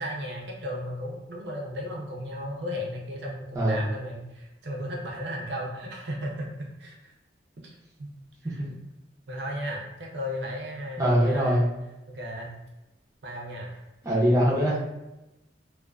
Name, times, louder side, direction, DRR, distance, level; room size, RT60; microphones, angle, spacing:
voice 1, 0.0-7.1 7.6-7.7 8.0-8.1 8.5-8.8 9.3-11.6 12.1-12.5 13.2-13.7, equal, 65° right, -1 dB, 0.5 m, -35 dB
voice 2, 3.5-3.9 8.6-8.7 11.0-11.6 14.0-14.8, equal, 15° right, -6 dB, 0.5 m, -22 dB
2.4 x 2.3 x 2.2 m, 0.97 s
head